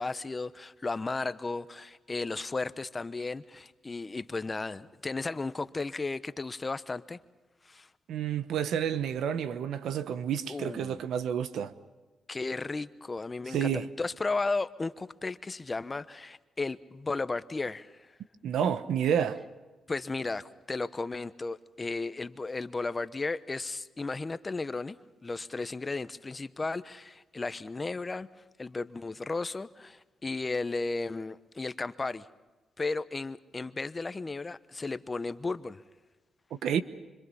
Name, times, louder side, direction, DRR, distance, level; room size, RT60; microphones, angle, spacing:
voice 1, 0.0-7.2 7.6-7.9 10.5-11.0 12.3-18.1 19.9-28.3 28.6-32.3 32.8-35.8, left 3 dB, 30° left, 1.0 m, -34 dB
voice 2, 8.1-11.7 13.5-13.9 18.4-19.4 36.6-36.8, right 8 dB, 80° right, 1.1 m, -29 dB
26.5 x 25.5 x 5.6 m
supercardioid pair, 60°, 0 cm